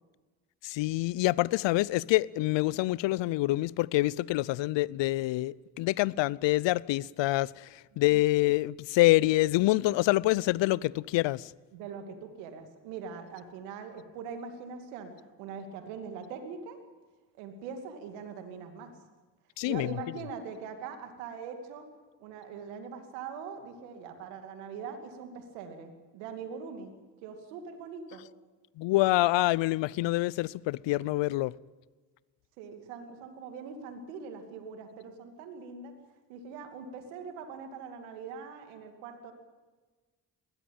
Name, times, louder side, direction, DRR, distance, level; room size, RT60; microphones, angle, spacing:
voice 1, 0.6-11.5 19.6-19.9 28.8-31.5, left 18 dB, 65° left, 0.7 m, -26 dB
voice 2, 11.7-15.1 15.4-16.8 17.4-18.9 19.6-21.9 22.2-26.9 27.2-28.2 32.6-35.9 36.3-39.3, right 6 dB, 85° right, 2.6 m, -42 dB
21.0 x 16.0 x 8.9 m
hypercardioid pair, 45°, 47 cm